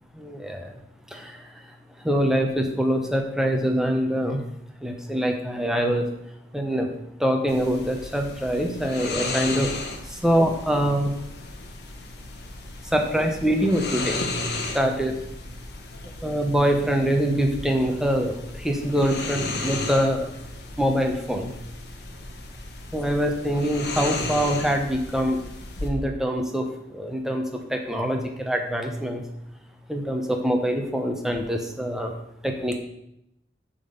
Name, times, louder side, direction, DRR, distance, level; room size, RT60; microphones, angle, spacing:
voice 1, 0.2-0.7 1.1-1.5 2.0-4.4 4.8-6.1 6.5-6.9 7.2-9.7 10.1-11.1 12.9-14.2 14.7-15.2 16.2-20.3 20.8-21.5 22.9-25.4 25.8-27.4 27.7-29.2 29.9-32.1 32.4-32.8, equal, 5° right, 3 dB, 0.9 m, -24 dB
sound 1, 7.5-25.9, left 2 dB, 70° left, 1.2 m, -35 dB
8.9 x 3.9 x 6.7 m, 0.79 s
head